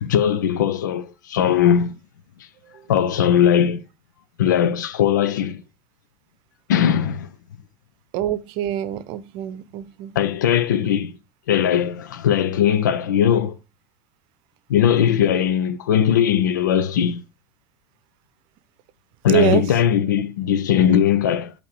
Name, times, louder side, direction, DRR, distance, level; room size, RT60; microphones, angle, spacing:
voice 1, 0.0-2.0 2.9-3.8 4.4-5.6 6.7-7.3 10.1-11.2 11.5-13.6 14.7-17.2 19.2-21.5, left 9 dB, 70° left, 0.6 m, -19 dB
voice 2, 8.1-10.1 19.3-19.6, right 11 dB, 50° right, 0.7 m, -24 dB
8.3 x 2.9 x 4.7 m
figure-of-eight pair, 70°, 10 cm